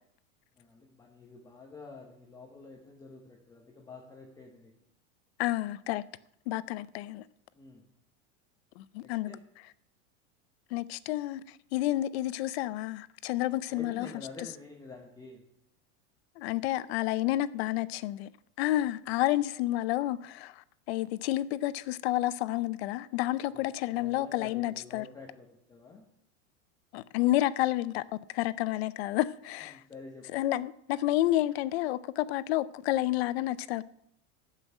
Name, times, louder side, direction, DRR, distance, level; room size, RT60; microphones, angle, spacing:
voice 1, 0.6-4.7 7.5-7.8 9.0-9.4 13.7-15.4 23.5-26.0 29.7-30.3, left 3 dB, 10° left, 1.0 m, -48 dB
voice 2, 5.4-6.0 6.5-7.2 8.8-9.3 10.7-11.4 11.7-14.1 16.4-18.3 18.6-25.1 26.9-28.0 28.3-29.8 30.3-33.8, left 15 dB, 60° left, 0.6 m, -30 dB
12.5 x 5.7 x 8.0 m
supercardioid pair, 170°, 36 cm